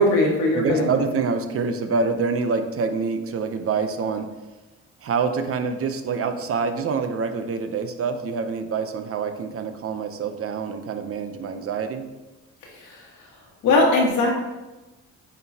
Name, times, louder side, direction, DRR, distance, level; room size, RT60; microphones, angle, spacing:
voice 1, 0.0-1.0 12.6-13.3 13.6-14.3, left 1 dB, 85° left, -2 dB, 1.6 m, -20 dB
voice 2, 0.5-4.3 5.0-12.1, right 5 dB, 50° right, 8 dB, 0.6 m, -26 dB
9.1 x 4.0 x 2.8 m, 1.1 s
cardioid pair, 90°, 30 cm